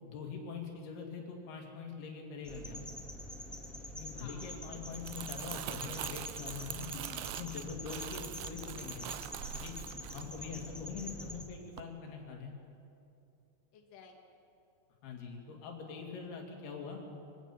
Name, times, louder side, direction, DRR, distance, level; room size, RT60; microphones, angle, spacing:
voice 1, 0.0-2.8 4.0-6.9 7.3-9.1 9.5-9.7 10.1-12.5 15.0-17.0, left 5 dB, 90° left, 1 dB, 4.4 m, -43 dB
sound 1, 2.4-11.4, left 1 dB, ahead, 0.8 m, -45 dB
voice 2, 4.1-4.6 6.9-7.3 7.9-8.2 13.7-14.1, left 5 dB, 60° left, 1 dB, 3.2 m, -53 dB
Crumpling crinkling, 4.8-11.2 11.5-11.8, right 14 dB, 85° right, 2.6 m, -44 dB
23.0 x 16.5 x 7.1 m, 2.6 s
omnidirectional pair, 4.4 m